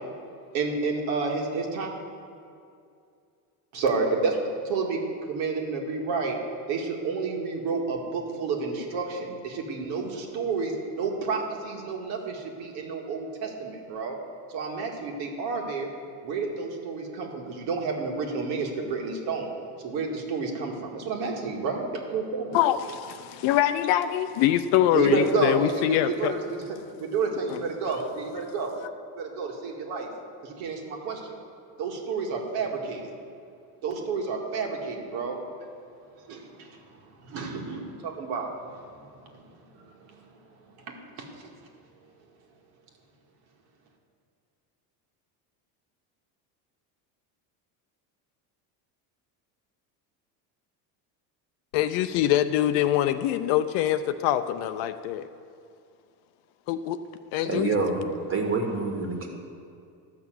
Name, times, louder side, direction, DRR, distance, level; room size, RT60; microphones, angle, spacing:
voice 1, 0.5-1.9 3.7-6.4 6.7-14.2 14.5-15.9 16.2-19.5 19.8-22.5 24.9-26.6 27.0-28.7 29.2-30.1 30.4-31.3 31.8-33.1 33.8-35.4 36.3-37.0 37.2-39.6 40.1-40.3 40.9-41.3, right 4 dB, 75° right, 1 dB, 2.1 m, -30 dB
voice 2, 22.5-26.3 27.5-27.6 51.7-55.2 56.7-57.0 57.3-57.7, left 12 dB, 65° left, 9 dB, 0.6 m, -24 dB
voice 3, 57.4-59.3, right 3 dB, 30° right, 2 dB, 1.7 m, -27 dB
12.5 x 6.0 x 7.7 m, 2.4 s
supercardioid pair, 120°, 45 cm